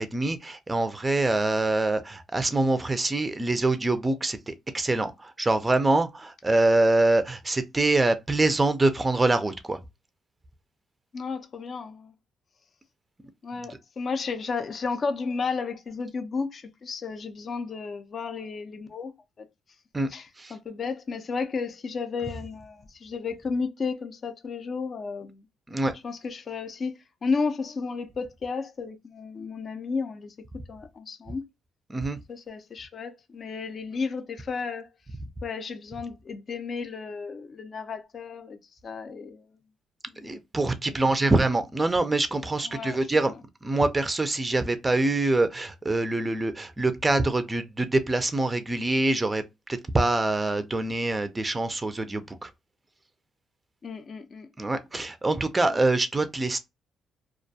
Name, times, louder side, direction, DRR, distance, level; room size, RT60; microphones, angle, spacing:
voice 1, 0.0-9.8 19.9-20.1 20.4-20.5 25.7-25.9 31.9-32.2 40.2-43.3 43.6-52.5 54.6-56.6, right 2 dB, 20° right, 0.4 m, -25 dB
voice 2, 11.1-12.1 13.4-19.1 19.4-19.5 20.1-25.5 26.0-26.9 27.2-30.3 30.7-31.5 32.3-34.9 35.4-39.5 40.1-40.4 40.9-41.1 42.6-43.1 53.8-54.5, left 4 dB, 45° left, 0.5 m, -33 dB
2.4 x 2.2 x 2.6 m
cardioid pair, 90°, 0 cm